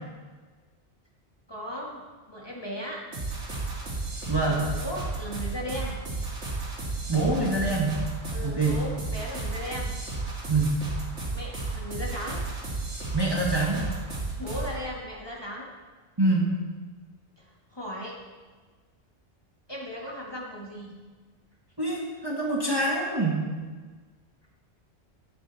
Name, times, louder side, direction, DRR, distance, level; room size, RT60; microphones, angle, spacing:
voice 1, 1.5-3.0 4.4-6.0 8.3-9.9 11.3-12.4 14.4-15.7 17.4-17.5 17.7-18.2 19.7-20.9, equal, 20° left, -3 dB, 1.8 m, -37 dB
sound 1, 3.1-14.8, right 3 dB, 80° right, 2.8 m, -33 dB
voice 2, 4.3-4.7 7.1-8.0 8.4-8.8 10.5-10.8 13.1-13.8 16.2-16.5 21.8-23.4, right 2 dB, 20° right, -3 dB, 1.5 m, -25 dB
13.5 x 8.5 x 4.1 m, 1.4 s
omnidirectional pair, 1.2 m